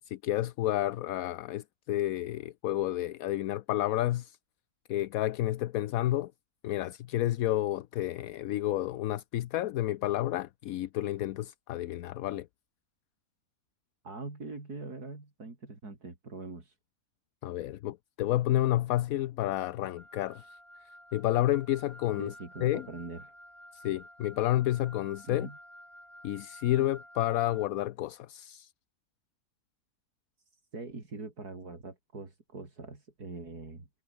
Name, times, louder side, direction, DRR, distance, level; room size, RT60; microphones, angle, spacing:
voice 1, 0.0-4.4 4.9-6.3 6.6-12.5 17.4-20.4 21.1-22.3 22.6-22.9 23.7-25.5 26.2-28.7, left 14 dB, 75° left, 1.0 m, -30 dB
voice 2, 14.0-16.8 22.2-23.3 25.2-25.6 30.5-33.9, right 3 dB, 85° right, 4.8 m, -43 dB
Wind instrument woodwind instrument, 20.0-27.7, equal, ahead, 5.6 m, -52 dB
omnidirectional pair, 1.6 m